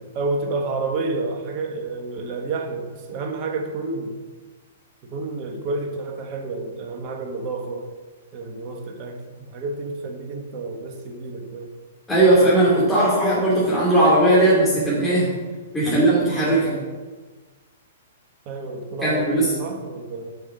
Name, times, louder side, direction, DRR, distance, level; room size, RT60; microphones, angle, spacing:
voice 1, 0.0-4.2 5.0-7.9 8.3-11.7 15.8-16.3 18.4-20.3, right 3 dB, 40° right, 4 dB, 1.4 m, -30 dB
voice 2, 12.1-15.3 15.7-16.8 19.0-19.5, right 1 dB, 5° left, -10 dB, 2.8 m, -18 dB
7.5 x 5.6 x 5.3 m, 1.3 s
figure-of-eight pair, 115°, 0 cm